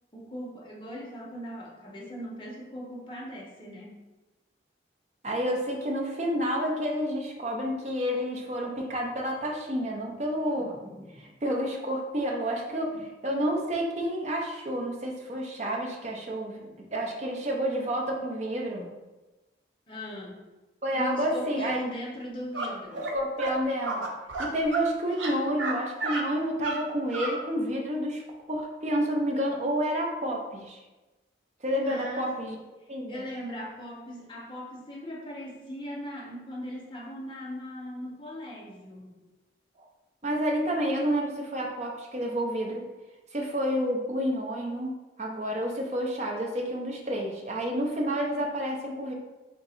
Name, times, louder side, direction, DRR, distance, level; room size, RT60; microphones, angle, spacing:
voice 1, 0.1-4.0 10.6-11.2 12.9-13.0 19.9-20.4 20.9-23.1 31.8-32.4 32.8-39.2, equal, 25° left, -4 dB, 0.8 m, -39 dB
voice 2, 5.2-10.7 11.4-12.9 13.2-18.9 20.8-21.8 23.1-24.1 24.4-28.2 28.5-30.8 31.6-32.6 32.9-33.2 40.2-42.8 43.3-44.9 45.2-49.1, equal, 35° right, 0 dB, 0.6 m, -29 dB
sound 1, 22.5-22.7 23.0-23.1 23.4-23.5 23.8-24.9 25.1-25.7 26.0-26.2 26.6-26.8 27.1-27.3, right 2 dB, 85° right, 0.6 m, -32 dB
3.7 x 2.7 x 4.1 m, 1.1 s
head